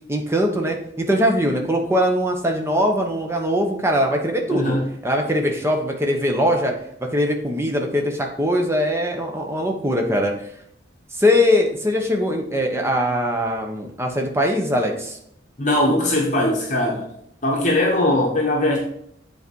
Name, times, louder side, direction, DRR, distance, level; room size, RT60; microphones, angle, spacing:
voice 1, 0.1-4.8 5.0-6.7 7.0-10.5 11.2-15.2, equal, 15° right, 2 dB, 1.0 m, -21 dB
voice 2, 4.5-4.9 15.6-17.1 17.4-18.8, left 1 dB, 40° left, -1 dB, 1.1 m, -20 dB
7.9 x 4.1 x 4.5 m, 0.72 s
head